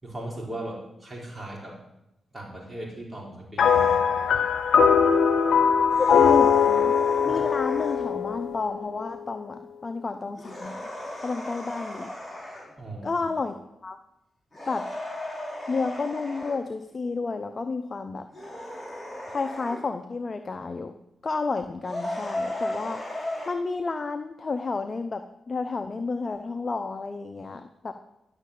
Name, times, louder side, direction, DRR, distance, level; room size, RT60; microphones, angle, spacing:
voice 1, 0.0-1.8 2.3-4.4 7.2-7.3 12.8-13.2, right 1 dB, 20° right, -2 dB, 5.0 m, -38 dB
sound 1, 3.6-9.1, left 7 dB, 70° left, 0.9 m, -21 dB
sound 2, 3.6-4.0 5.9-8.1 10.3-12.7 14.5-16.6 18.3-19.8 21.8-23.5, left 1 dB, 15° left, 5.3 m, -36 dB
voice 2, 6.0-6.9 7.2-10.9 11.2-12.1 13.0-13.5 13.8-14.0 14.7-14.8 15.7-18.3 19.3-20.9 21.2-23.0 23.5-27.9, left 4 dB, 40° left, 8 dB, 0.8 m, -31 dB
12.0 x 6.6 x 8.5 m, 0.86 s
cardioid pair, 60°, 0 cm